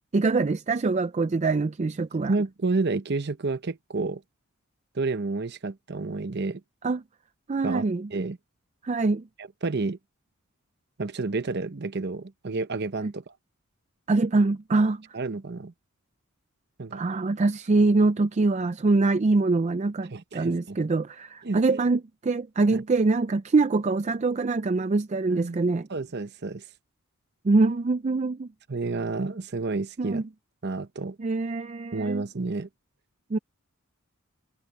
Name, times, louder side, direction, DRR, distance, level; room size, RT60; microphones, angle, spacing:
voice 1, 0.1-2.3 6.8-7.0 7.5-8.1 8.8-9.2 14.1-15.2 16.9-25.8 27.4-28.5 30.0-30.2 31.2-32.2 33.3-33.4, right 3 dB, 30° right, 0.4 m, -24 dB
voice 2, 2.2-4.2 4.9-6.6 7.6-8.4 9.4-10.0 11.0-13.3 15.1-15.7 16.8-17.1 20.1-20.8 21.4-21.6 22.7-22.8 25.3-25.6 25.9-26.6 28.7-30.2 30.6-31.2 31.9-32.7, right 3 dB, 50° right, 0.9 m, -30 dB
head